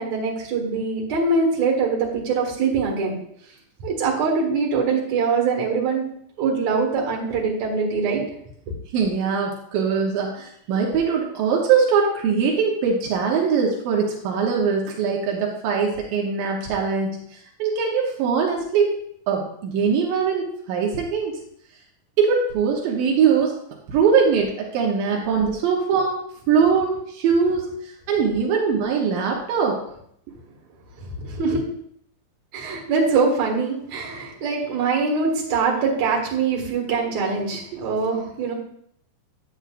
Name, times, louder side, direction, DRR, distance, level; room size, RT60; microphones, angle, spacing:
voice 1, 0.0-3.1 3.8-6.0 6.4-8.2 31.0-31.6 32.5-38.5, right 4 dB, 60° right, -1 dB, 3.0 m, -23 dB
voice 2, 8.9-18.9 19.3-21.4 22.2-23.5 23.9-26.1 26.5-29.8, right 6 dB, 85° right, -1 dB, 2.7 m, -22 dB
8.8 x 8.3 x 2.5 m, 0.68 s
omnidirectional pair, 4.0 m